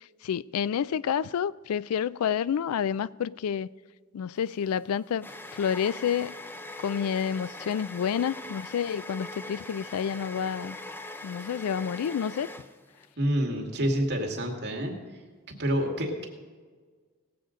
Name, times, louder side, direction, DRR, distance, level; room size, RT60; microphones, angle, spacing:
voice 1, 0.2-3.7 4.1-5.3 5.5-6.3 6.8-10.8 11.2-12.5, left 8 dB, 80° left, 0.3 m, -29 dB
sound 1, 4.4-13.1, left 1 dB, 10° left, 0.5 m, -42 dB
voice 2, 13.2-14.9 15.6-16.3, equal, 50° right, 2.1 m, -27 dB
18.5 x 7.6 x 5.1 m
head